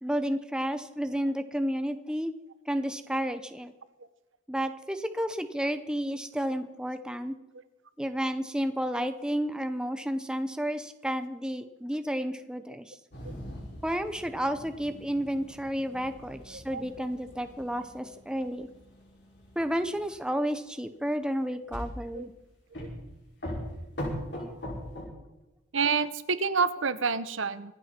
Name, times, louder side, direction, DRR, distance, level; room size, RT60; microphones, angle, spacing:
voice 1, 0.0-2.3 2.7-3.7 4.5-7.3 8.0-13.0 13.8-18.7 19.6-22.3 24.4-24.5, equal, 5° right, 8 dB, 0.7 m, -31 dB
sound 1, 13.1-20.1 21.7-22.2 22.7-23.1 23.4-25.0, equal, 60° left, 6.0 m, -41 dB
voice 2, 25.7-27.8, right 5 dB, 80° right, 14 dB, 0.9 m, -28 dB
26.0 x 9.1 x 4.4 m, 1.0 s
head